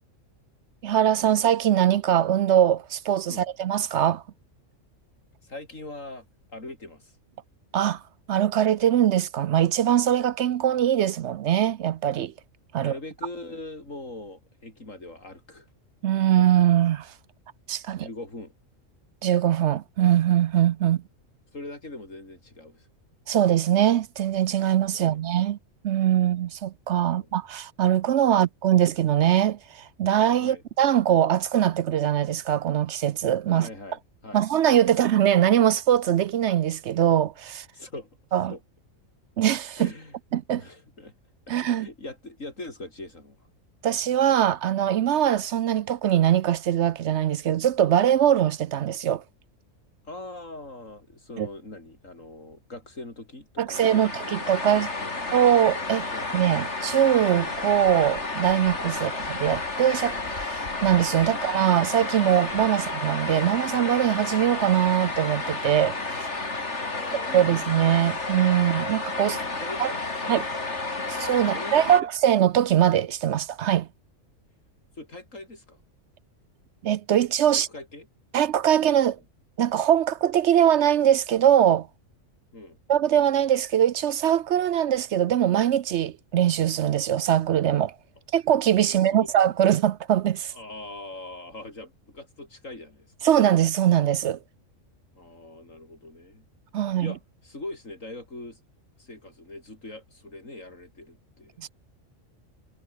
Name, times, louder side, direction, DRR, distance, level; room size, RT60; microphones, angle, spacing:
voice 1, 0.8-4.2 7.7-8.0 8.3-12.3 12.7-12.9 16.0-17.1 17.7-18.1 19.2-21.0 23.3-25.6 25.8-33.7 34.3-37.7 38.3-38.5 39.4-39.9 40.3-40.6 41.5-41.9 43.8-49.2 51.4-51.5 53.6-54.9 55.3-56.1 56.3-66.3 67.3-69.4 69.8-69.9 70.3-70.5 71.1-73.9 76.8-77.7 78.3-79.2 79.6-81.9 82.9-87.9 88.3-90.5 93.2-94.4 96.7-97.1 101.6-101.7, right 10 dB, 65° right, 0.8 m, -22 dB
voice 2, 5.4-7.2 12.8-15.7 18.0-18.5 20.8-21.0 21.5-22.9 24.9-25.2 27.1-27.3 28.3-28.4 28.7-28.8 30.4-30.6 33.5-34.5 34.9-35.0 37.7-38.2 38.5-38.6 39.8-40.2 40.5-41.1 41.5-43.5 50.0-54.1 54.6-55.1 56.1-56.3 58.9-59.1 61.3-61.4 62.7-62.8 66.8-67.6 69.4-70.7 71.1-71.2 71.4-72.1 75.0-75.8 77.5-78.1 82.5-82.8 88.9-89.3 90.5-93.3 95.1-96.5 97.0-98.6 99.0-101.7, left 2 dB, 75° left, 6.2 m, -42 dB
sound 1, 53.7-72.0, left 3 dB, 60° left, 3.7 m, -31 dB
omnidirectional pair, 1.4 m